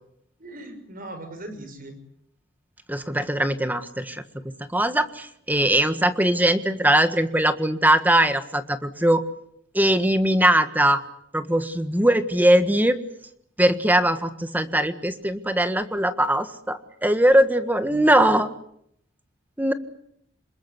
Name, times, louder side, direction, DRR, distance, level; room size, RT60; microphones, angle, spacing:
voice 1, 0.4-2.0 17.9-18.4, right 1 dB, 50° right, 8 dB, 6.0 m, -39 dB
voice 2, 2.9-9.2 9.7-11.0 11.3-13.0 13.6-18.5 19.6-19.7, right 1 dB, 10° right, 10 dB, 1.6 m, -21 dB
27.0 x 21.5 x 8.0 m, 0.71 s
head